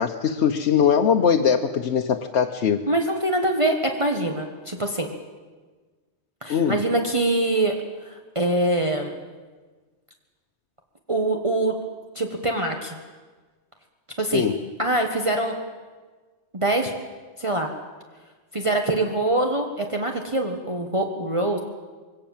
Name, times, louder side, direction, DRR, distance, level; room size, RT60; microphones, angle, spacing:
voice 1, 0.0-2.8 6.5-6.8 14.3-14.6, left 7 dB, 80° left, 4 dB, 1.2 m, -21 dB
voice 2, 2.9-5.1 6.4-7.7 8.0-9.1 11.1-11.7 12.1-13.0 14.2-14.4 14.8-15.5 16.5-16.9 17.4-17.7 18.5-21.6, right 1 dB, 30° right, 2 dB, 1.5 m, -24 dB
23.0 x 17.5 x 7.3 m, 1.4 s
omnidirectional pair, 1.1 m